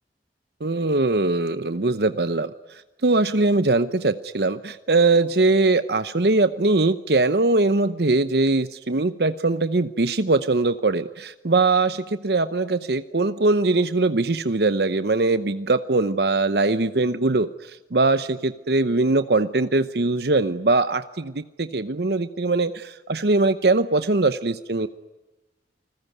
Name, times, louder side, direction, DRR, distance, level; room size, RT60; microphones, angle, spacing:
voice 1, 0.6-24.9, right 3 dB, 65° right, 12 dB, 0.9 m, -21 dB
29.5 x 21.0 x 9.4 m, 1.1 s
head